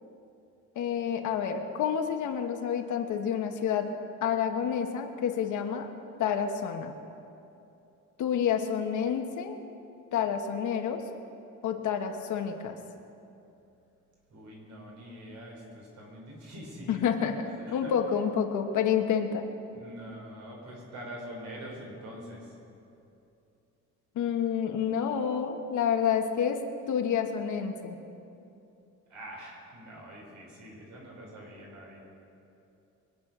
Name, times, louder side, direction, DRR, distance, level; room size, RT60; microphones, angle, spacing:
voice 1, 0.7-3.9 4.2-5.9 6.2-6.9 8.2-9.6 10.1-11.0 11.6-12.8 16.9-17.3 17.7-19.4 24.1-28.0, left 8 dB, 75° left, 5 dB, 1.3 m, -29 dB
voice 2, 14.3-17.0 17.6-17.9 19.7-22.5 29.1-32.0, equal, 70° right, -2 dB, 4.7 m, -44 dB
23.0 x 8.3 x 6.1 m, 2.8 s
cardioid pair, 155°, 30 cm